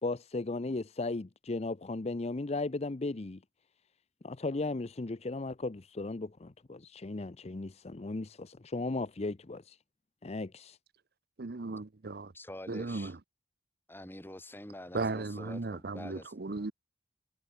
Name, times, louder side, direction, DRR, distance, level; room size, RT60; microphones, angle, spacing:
voice 1, 0.0-3.4 4.2-9.8 10.2-10.8, left 2 dB, 35° left, 0.6 m, -36 dB
voice 2, 11.4-12.3 12.7-13.2 14.9-16.7, right 3 dB, 60° right, 0.8 m, -36 dB
voice 3, 12.3-13.1 13.9-16.3, left 1 dB, 10° left, 3.3 m, -46 dB
head